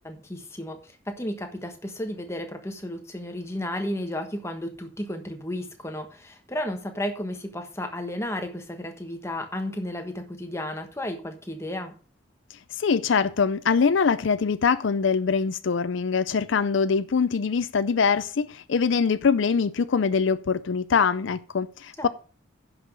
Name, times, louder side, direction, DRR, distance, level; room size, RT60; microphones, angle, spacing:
voice 1, 0.0-11.9 22.0-22.1, left 1 dB, 15° left, 1.3 m, -33 dB
voice 2, 12.7-22.1, left 5 dB, 70° left, 0.5 m, -23 dB
10.5 x 6.0 x 6.2 m
head